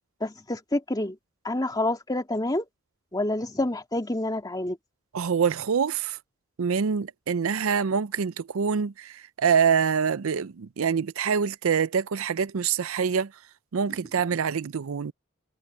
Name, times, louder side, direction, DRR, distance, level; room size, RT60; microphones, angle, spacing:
voice 1, 0.2-1.2 1.4-2.6 3.1-4.8, left 1 dB, 20° left, 2.4 m, -28 dB
voice 2, 5.1-6.2 6.6-13.3 13.7-15.1, right 6 dB, 75° right, 0.5 m, -25 dB
head